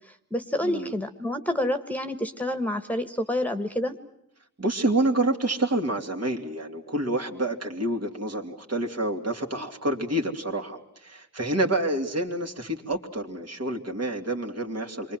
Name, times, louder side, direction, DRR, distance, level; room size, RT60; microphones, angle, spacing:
voice 1, 0.1-4.0, left 1 dB, 5° left, 7 dB, 1.5 m, -28 dB
voice 2, 4.6-15.2, right 1 dB, 55° right, 3 dB, 3.0 m, -28 dB
28.0 x 23.5 x 7.7 m, 0.80 s
wide cardioid pair, 115°, 31 cm